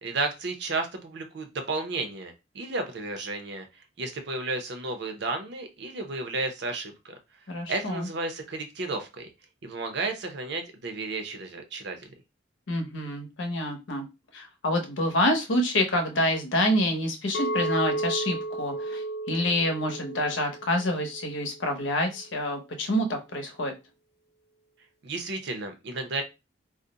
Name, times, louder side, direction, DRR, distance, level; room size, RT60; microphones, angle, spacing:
voice 1, 0.0-3.7 4.0-7.1 7.7-9.3 9.6-12.0 25.0-26.2, right 3 dB, 65° right, 6 dB, 0.6 m, -32 dB
voice 2, 7.5-8.1 12.7-14.1 14.3-23.7, left 1 dB, 90° left, 4 dB, 0.8 m, -27 dB
Chink clink, 17.3-21.6, right 2 dB, 60° left, 0.6 m, -33 dB
2.4 x 2.1 x 3.8 m, 0.25 s
head